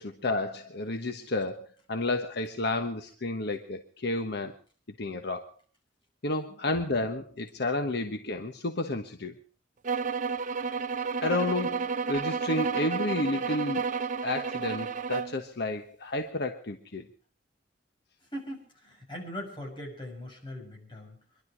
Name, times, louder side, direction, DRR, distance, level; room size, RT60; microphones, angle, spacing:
voice 1, 0.0-4.5 5.0-5.5 6.2-9.4 11.2-13.8 14.2-17.1, left 2 dB, 60° left, 6 dB, 1.2 m, -31 dB
sound 1, 9.8-15.4, right 5 dB, 45° right, 0.7 m, -31 dB
voice 2, 18.2-21.2, equal, 25° left, 0 dB, 6.5 m, -40 dB
25.0 x 11.5 x 4.9 m, 0.40 s
head